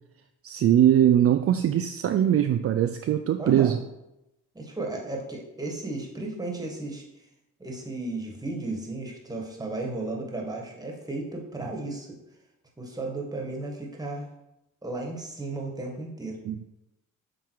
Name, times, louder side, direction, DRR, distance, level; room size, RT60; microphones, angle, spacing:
voice 1, 0.4-3.8 16.5-16.6, right 10 dB, 50° right, 7 dB, 0.4 m, -21 dB
voice 2, 3.4-3.7 4.5-7.0 7.6-12.2 12.8-14.3 14.8-16.4, right 2 dB, 10° right, 0 dB, 1.7 m, -34 dB
7.4 x 3.7 x 4.7 m, 0.90 s
cardioid pair, 90°, 30 cm